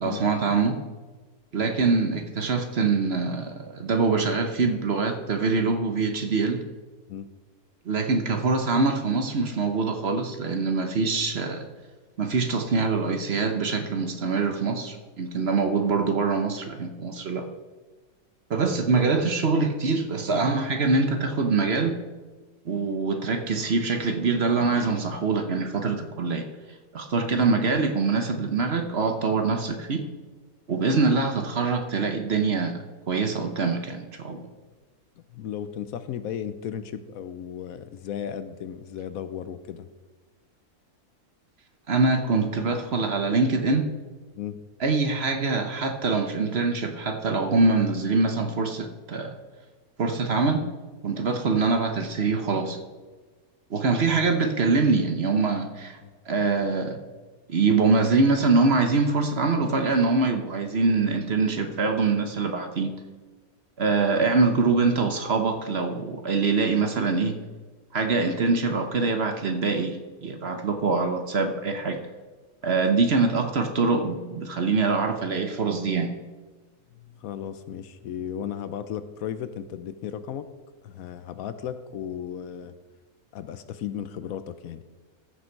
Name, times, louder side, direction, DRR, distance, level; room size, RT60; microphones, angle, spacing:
voice 1, 0.0-0.8 1.5-6.6 7.8-11.7 12.2-17.5 18.5-22.0 22.6-26.5 26.9-30.0 30.7-34.5 41.9-43.9 44.8-49.3 50.0-50.7 51.0-52.8 53.7-56.0 56.3-57.0 57.5-63.0 63.8-67.4 67.9-72.0 72.6-76.1, right 4 dB, 50° right, 5 dB, 1.1 m, -24 dB
voice 2, 35.3-39.9 44.4-44.6 56.0-56.1 72.8-73.0 76.9-80.5 80.8-82.7 83.3-84.8, left 9 dB, 70° left, 12 dB, 1.0 m, -35 dB
14.0 x 6.7 x 4.6 m, 1.3 s
omnidirectional pair, 1.6 m